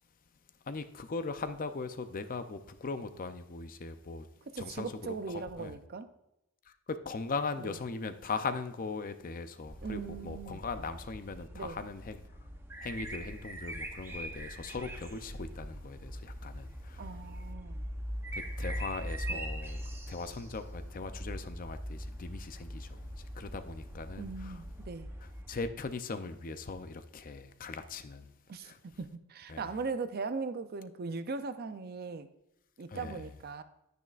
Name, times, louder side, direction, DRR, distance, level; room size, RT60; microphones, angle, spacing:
voice 1, 0.6-4.3 4.6-5.8 6.7-12.2 12.8-17.2 18.3-24.6 25.2-28.3 28.6-28.8 29.5-29.7 32.9-33.3, left 4 dB, 40° left, 0.5 m, -39 dB
voice 2, 4.5-6.1 7.6-7.7 9.8-10.6 11.5-11.8 17.0-17.8 19.3-19.5 24.2-25.1 28.5-32.3 32.8-33.6, right 4 dB, 45° right, 0.5 m, -39 dB
sound 1, 9.6-25.7, equal, 10° right, 0.7 m, -42 dB
10.5 x 9.2 x 2.4 m
head